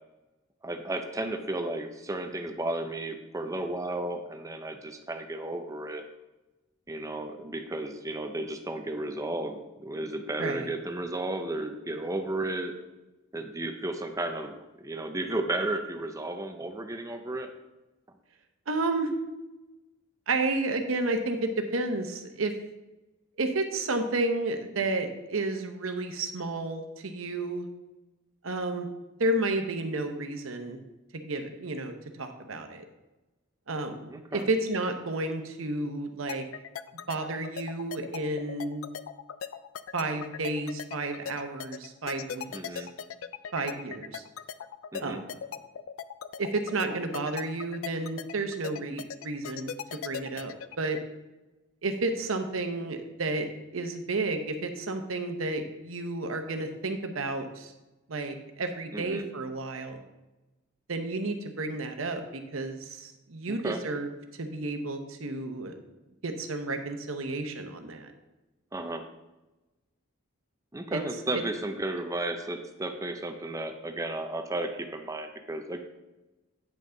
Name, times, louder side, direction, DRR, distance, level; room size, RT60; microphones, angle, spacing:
voice 1, 0.6-6.0 6.9-12.7 13.3-17.5 34.1-34.5 42.5-42.9 44.9-45.2 58.9-59.2 63.6-63.8 68.7-69.0 70.7-75.8, right 2 dB, 15° right, 6 dB, 0.6 m, -33 dB
voice 2, 10.4-10.7 18.7-19.1 20.3-22.5 23.4-27.7 28.4-28.9 29.2-30.8 31.1-32.8 33.7-36.4 37.1-38.8 39.9-42.9 43.5-44.2 45.0-45.3 46.4-51.0 51.8-57.7 58.1-60.0 60.9-65.7 66.2-68.1 70.9-71.0 71.3-71.4, right 2 dB, 85° right, 6 dB, 0.9 m, -31 dB
sound 1, 36.3-51.0, left 8 dB, 80° left, 0.4 m, -38 dB
9.1 x 5.6 x 3.9 m, 1.0 s
head